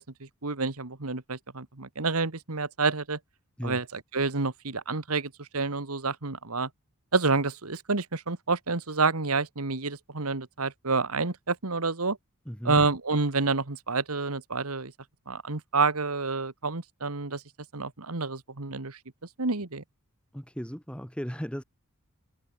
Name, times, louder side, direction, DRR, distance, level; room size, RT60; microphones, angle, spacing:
voice 1, 0.0-3.2 3.6-6.7 7.1-12.2 12.6-14.9 15.3-17.4 17.7-19.0 19.4-19.8, right 4 dB, 80° right, 1.8 m, -29 dB
voice 2, 12.5-12.8 20.3-21.6, equal, 5° left, 3.3 m, -36 dB
head